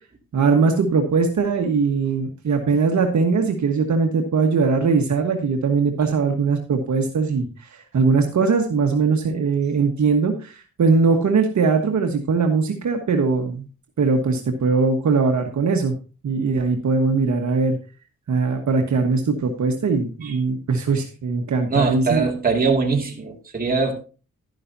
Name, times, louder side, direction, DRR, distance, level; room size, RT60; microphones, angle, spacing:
voice 1, 0.3-13.7 14.0-15.9 16.2-17.8 18.3-22.3, right 4 dB, 65° right, 3 dB, 1.4 m, -20 dB
voice 2, 21.7-23.9, right 4 dB, 30° right, 1 dB, 2.3 m, -22 dB
11.5 x 10.5 x 2.7 m, 0.34 s
wide cardioid pair, 110°, 31 cm